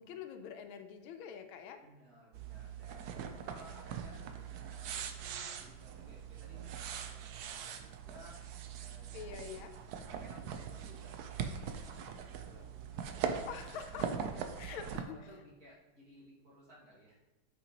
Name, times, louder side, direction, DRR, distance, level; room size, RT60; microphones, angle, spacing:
voice 1, 0.0-1.8 9.1-9.7 13.5-14.2 14.6-15.2, left 7 dB, 85° left, 7 dB, 1.4 m, -45 dB
voice 2, 1.8-3.2 3.4-8.4 8.8-9.4 9.7-17.1, equal, 45° right, -6 dB, 2.5 m, -59 dB
sound 1, 2.3-15.0, right 7 dB, 70° right, 0.9 m, -42 dB
8.3 x 5.7 x 2.9 m, 0.98 s
omnidirectional pair, 2.2 m